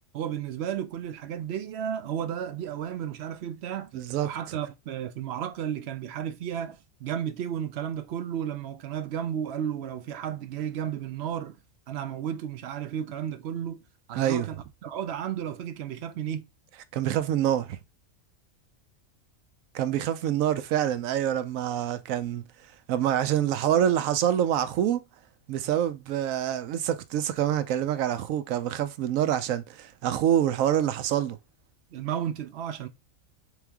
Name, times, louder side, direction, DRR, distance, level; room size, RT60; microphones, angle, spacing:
voice 1, 0.1-3.9 4.2-11.6 11.9-13.8 14.1-16.4 31.9-32.9, right 9 dB, 65° right, 0.7 m, -33 dB
voice 2, 3.9-4.3 14.2-14.5 16.9-17.8 19.7-22.5 22.9-25.0 25.5-31.4, right 10 dB, 85° right, 1.0 m, -26 dB
4.1 x 3.3 x 3.4 m
omnidirectional pair, 1.4 m